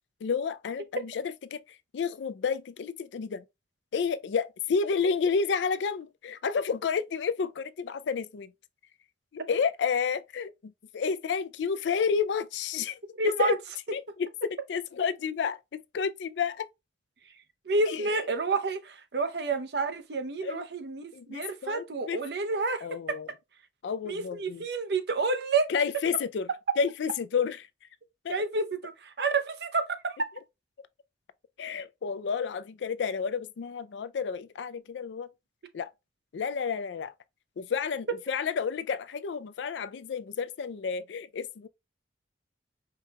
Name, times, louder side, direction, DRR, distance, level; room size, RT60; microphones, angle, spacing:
voice 1, 0.2-1.1 1.5-1.6 1.9-3.4 3.9-8.5 9.3-13.5 13.9-14.0 14.7-16.6 17.9-18.1 20.4-20.6 21.1-22.2 22.8-23.3 23.8-24.6 25.7-26.5 26.8-27.6 28.2-28.3 31.6-35.3 35.7-35.9 36.3-37.1 37.6-41.7, left 6 dB, 85° left, 0.4 m, -30 dB
voice 2, 13.1-13.6 17.2-17.4 17.6-23.2 24.0-25.7 26.7-26.8 28.3-30.3, right 3 dB, 65° right, 0.6 m, -29 dB
4.7 x 2.3 x 2.8 m
head